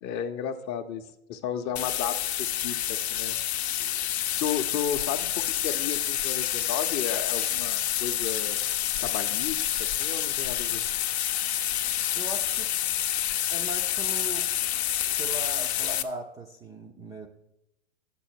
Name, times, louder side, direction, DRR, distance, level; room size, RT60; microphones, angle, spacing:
voice 1, 0.0-3.4 4.4-8.6 9.0-10.8, left 8 dB, 30° left, 8 dB, 0.6 m, -33 dB
sound 1, 1.8-16.0, left 12 dB, 75° left, 0.6 m, -28 dB
voice 2, 12.1-12.7 13.5-14.5 15.2-17.3, right 2 dB, 10° right, 1 dB, 0.4 m, -38 dB
8.4 x 6.9 x 4.5 m, 0.85 s
hypercardioid pair, 120°, 33 cm